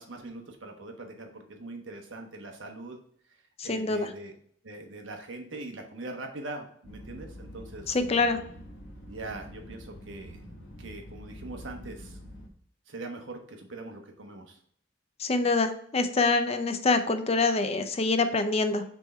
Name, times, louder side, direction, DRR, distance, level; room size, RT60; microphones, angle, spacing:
voice 1, 0.0-3.0 3.6-4.3 4.6-8.0 9.1-10.4 10.8-12.2 12.9-14.6, right 2 dB, 75° right, 3 dB, 1.2 m, -42 dB
voice 2, 3.6-4.1 7.9-8.4 15.2-18.8, left 3 dB, 30° left, 8 dB, 0.5 m, -25 dB
sound 1, 6.8-12.5, equal, 75° left, 1.6 m, -46 dB
6.1 x 3.7 x 4.3 m, 0.62 s
head